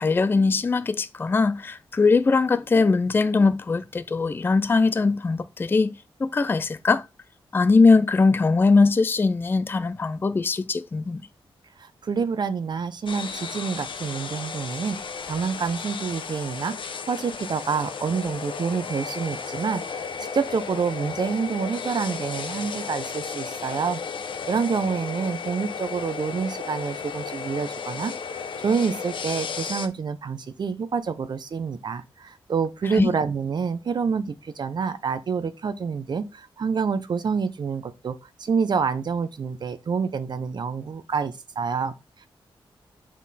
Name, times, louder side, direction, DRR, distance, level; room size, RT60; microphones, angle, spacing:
voice 1, 0.0-5.9 6.2-7.0 7.5-11.2 33.0-33.1, left 4 dB, 20° left, 0.3 m, -21 dB
voice 2, 11.8-15.0 15.3-16.8 17.1-24.0 24.5-42.3, right 5 dB, 50° right, 0.6 m, -27 dB
sound 1, 13.1-29.9, left 6 dB, 60° left, 0.7 m, -34 dB
7.3 x 3.7 x 4.1 m
wide cardioid pair, 120°, 10 cm